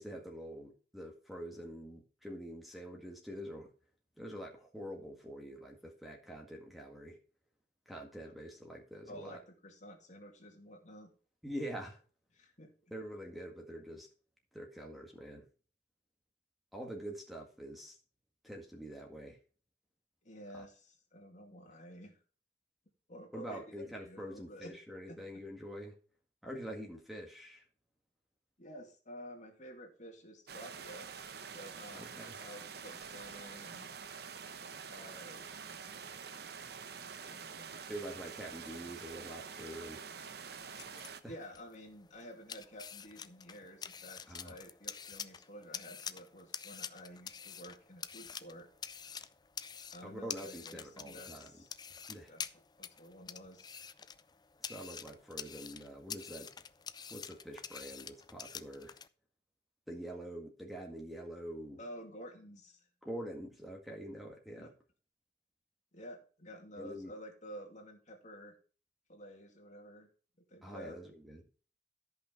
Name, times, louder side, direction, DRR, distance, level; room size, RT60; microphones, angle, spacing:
voice 1, 0.0-3.7 4.2-7.2 7.9-9.4 11.4-12.0 12.9-14.1 14.5-15.5 16.7-18.0 18.4-19.4 20.5-20.7 23.3-26.0 26.4-27.6 31.9-32.4 37.9-40.0 41.2-41.3 44.3-44.6 50.0-51.5 52.1-52.3 54.6-56.5 57.1-59.0 59.9-61.8 63.0-64.7 66.8-67.1 70.6-71.5, equal, ahead, 0 dB, 1.9 m, -45 dB
voice 2, 9.1-11.1 12.3-12.9 20.2-22.2 23.1-24.7 25.1-25.2 28.6-31.1 31.5-33.9 34.9-35.4 36.9-37.9 41.3-48.7 49.9-51.7 52.3-52.4 52.8-53.7 61.8-62.9 64.6-64.7 65.9-68.5 69.1-70.1 70.5-71.0, equal, 45° left, 3 dB, 2.4 m, -51 dB
sound 1, 30.5-41.2, right 6 dB, 65° right, 0.9 m, -47 dB
sound 2, 40.5-59.1, left 7 dB, 25° left, 0.5 m, -47 dB
13.5 x 5.6 x 4.5 m, 0.38 s
head